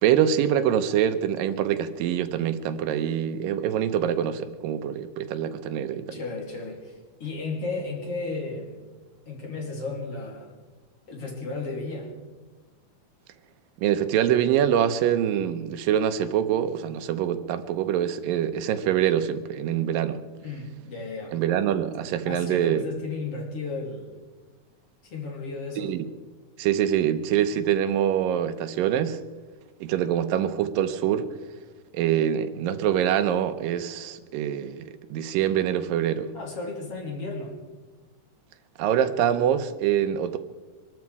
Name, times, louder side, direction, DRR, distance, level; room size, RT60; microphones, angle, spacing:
voice 1, 0.0-6.2 13.8-20.2 21.3-22.8 25.8-26.1 26.6-29.2 29.8-31.3 31.9-36.3 38.8-40.4, right 10 dB, 90° right, 2.6 m, -25 dB
voice 2, 6.1-8.8 9.3-10.5 11.1-12.1 20.4-21.4 22.3-24.1 25.0-25.9 36.3-37.6, left 3 dB, 45° left, 3.7 m, -34 dB
24.0 x 12.5 x 4.8 m
omnidirectional pair, 3.9 m